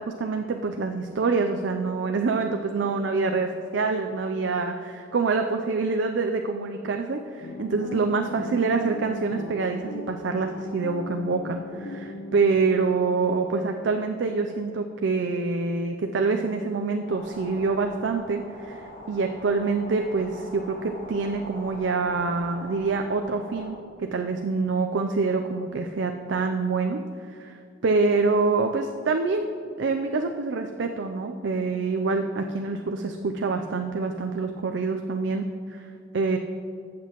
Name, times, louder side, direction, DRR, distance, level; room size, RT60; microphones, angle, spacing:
voice 1, 0.0-27.0 27.3-29.5 29.8-35.9 36.1-36.4, right 4 dB, 65° right, 5 dB, 0.4 m, -26 dB
sound 1, 7.4-13.3, left 2 dB, 80° left, 0.6 m, -38 dB
sound 2, 17.1-23.7, left 1 dB, 50° left, 1.6 m, -43 dB
14.0 x 7.7 x 3.0 m, 2.5 s
head